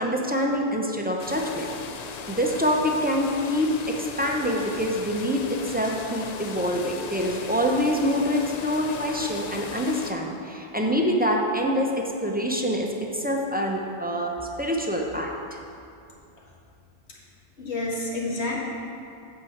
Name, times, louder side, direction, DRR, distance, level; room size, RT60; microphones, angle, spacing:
voice 1, 0.0-1.7 2.3-15.6, equal, 10° right, 0 dB, 0.6 m, -26 dB
sound 1, 1.2-10.1, left 5 dB, 55° left, 0.5 m, -37 dB
voice 2, 17.6-18.6, left 2 dB, 80° left, -3 dB, 1.8 m, -29 dB
8.2 x 4.8 x 7.2 m, 2.5 s
omnidirectional pair, 1.1 m